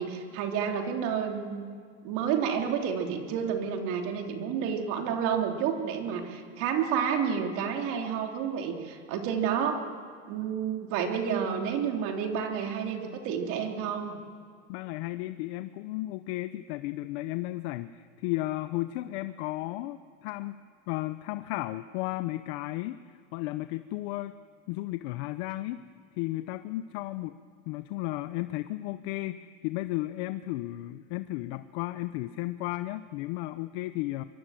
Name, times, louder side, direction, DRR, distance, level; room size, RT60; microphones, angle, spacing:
voice 1, 0.0-1.6 2.0-9.8 10.3-14.2, right 7 dB, 70° right, 3 dB, 3.3 m, -30 dB
voice 2, 14.7-24.4 24.7-25.8 26.1-27.4 27.7-34.2, left 17 dB, 80° left, 12 dB, 0.8 m, -34 dB
24.0 x 22.5 x 7.7 m, 2.2 s
supercardioid pair, 125°, 32 cm